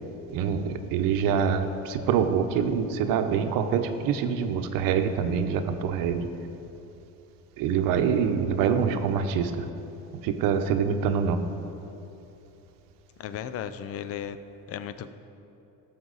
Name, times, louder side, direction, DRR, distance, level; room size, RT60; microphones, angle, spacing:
voice 1, 0.3-6.3 7.6-9.7 10.2-11.4, right 7 dB, 70° right, 8 dB, 0.9 m, -25 dB
voice 2, 13.2-14.4 14.7-15.1, left 9 dB, 40° left, 12 dB, 0.6 m, -35 dB
17.0 x 7.2 x 4.0 m, 3.0 s
cardioid pair, 140°, 35 cm